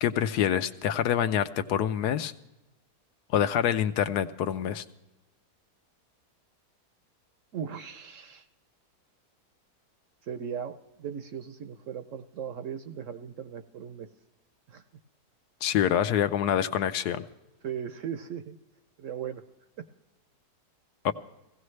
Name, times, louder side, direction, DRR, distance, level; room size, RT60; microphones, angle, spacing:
voice 1, 0.0-2.3 3.3-4.8 15.6-17.2 21.0-21.1, left 10 dB, 80° left, 11 dB, 1.2 m, -26 dB
voice 2, 7.5-8.5 10.2-14.1 14.7-14.8 17.6-18.6 19.0-19.4, right 8 dB, 65° right, 9 dB, 0.8 m, -38 dB
17.0 x 16.0 x 3.2 m, 0.97 s
omnidirectional pair, 1.7 m